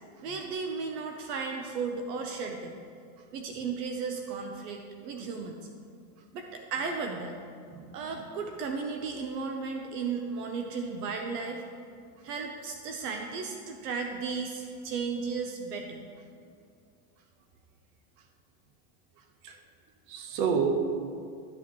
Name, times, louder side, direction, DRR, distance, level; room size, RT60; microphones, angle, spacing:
voice 1, 0.2-2.8 3.3-5.6 6.3-7.4 7.9-11.6 12.2-16.1, right 5 dB, 85° right, 3 dB, 1.0 m, -35 dB
voice 2, 7.7-8.2 19.4-19.6 20.1-20.8, right 6 dB, 60° right, 5 dB, 1.2 m, -30 dB
12.0 x 6.2 x 3.1 m, 2.3 s
supercardioid pair, 130°, 47 cm